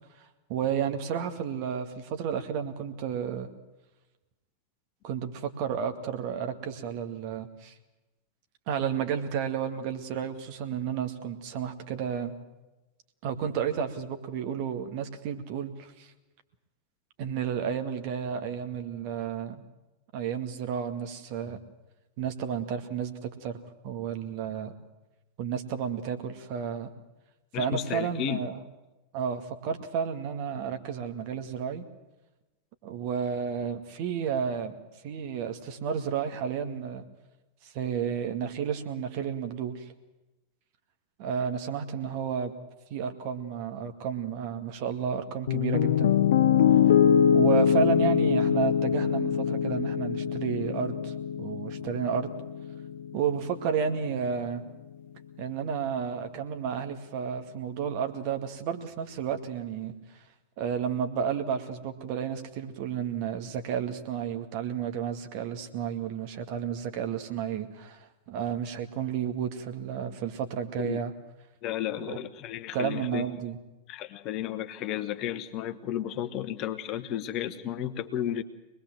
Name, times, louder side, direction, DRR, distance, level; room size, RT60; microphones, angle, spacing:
voice 1, 0.2-3.5 5.0-7.7 8.7-12.3 13.2-16.1 17.2-19.6 20.1-21.6 22.2-23.6 23.8-24.7 25.4-26.9 27.5-28.6 29.1-31.8 32.8-37.0 37.6-39.9 41.2-42.5 42.9-46.2 46.7-46.9 47.3-52.3 53.1-54.6 55.4-59.9 60.6-71.1 72.1-72.2 72.7-73.6, right 8 dB, 45° right, 6 dB, 2.2 m, -32 dB
voice 2, 27.5-28.4 70.8-71.0 71.6-73.2 73.9-78.4, left 11 dB, 40° left, 9 dB, 1.3 m, -33 dB
Piano, 45.5-53.6, left 8 dB, 60° left, 0.8 m, -24 dB
24.5 x 20.0 x 7.7 m, 1.1 s
figure-of-eight pair, 90°, 0 cm